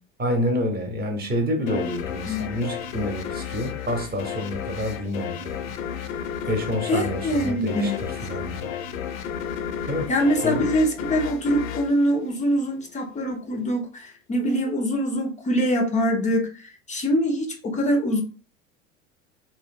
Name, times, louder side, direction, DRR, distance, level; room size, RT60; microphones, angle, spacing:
voice 1, 0.2-5.7 6.0-8.7 9.8-10.1 10.4-10.6, equal, 25° right, 3 dB, 0.8 m, -28 dB
sound 1, 1.7-12.9, left 8 dB, 80° left, 0.5 m, -33 dB
voice 2, 6.9-8.0 10.1-18.2, equal, 20° left, 3 dB, 0.4 m, -24 dB
2.7 x 2.1 x 2.5 m, 0.36 s
hypercardioid pair, 80°, 41 cm